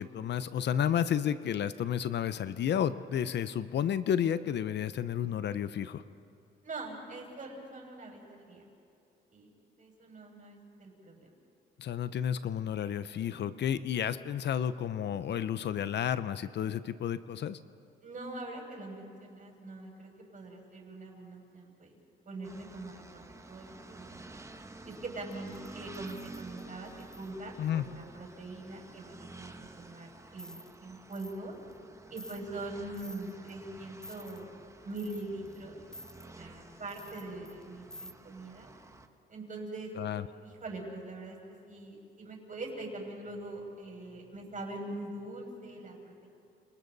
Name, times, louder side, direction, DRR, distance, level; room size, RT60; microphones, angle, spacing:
voice 1, 0.0-6.0 11.8-17.6 27.6-27.8 40.0-40.3, left 9 dB, 60° left, 13 dB, 0.8 m, -31 dB
voice 2, 6.6-8.6 9.3-9.5 9.8-11.3 18.0-22.0 22.2-24.4 24.8-31.5 32.1-34.6 34.8-35.8 36.4-38.7 39.3-39.9 40.4-41.4 41.7-46.3, right 2 dB, 40° right, 0 dB, 6.4 m, -43 dB
sound 1, 22.4-39.1, right 2 dB, 15° right, 1.3 m, -51 dB
sound 2, 25.2-27.3 30.4-30.7 31.1-31.4 31.7-31.8 32.2-32.4 32.9-33.5 34.0-34.4 34.9-35.6 35.9-36.3 36.9-37.6 37.9-38.1, equal, 5° left, 0.6 m, -50 dB
30.0 x 28.0 x 4.1 m, 2.6 s
cardioid pair, 90°, 20 cm